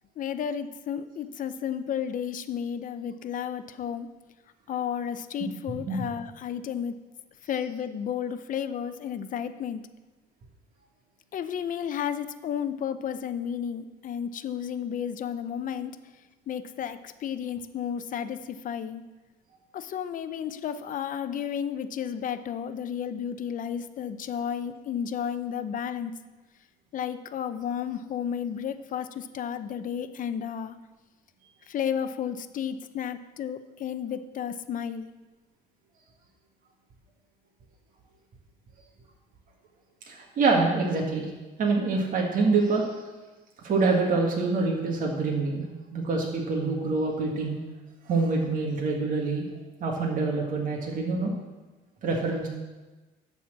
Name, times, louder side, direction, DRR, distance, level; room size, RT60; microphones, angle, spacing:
voice 1, 0.2-4.1 4.7-7.0 7.4-9.8 11.3-16.0 16.5-19.0 19.7-26.1 26.9-30.8 31.7-35.1, left 8 dB, 50° left, 11 dB, 0.6 m, -32 dB
voice 2, 5.7-6.0 40.1-41.3 41.6-43.0 43.6-45.6 45.9-47.6 48.1-49.5 49.8-51.3 52.0-52.5, right 3 dB, 50° right, -1 dB, 1.8 m, -26 dB
12.0 x 4.3 x 7.4 m, 1.2 s
cardioid pair, 110°, 17 cm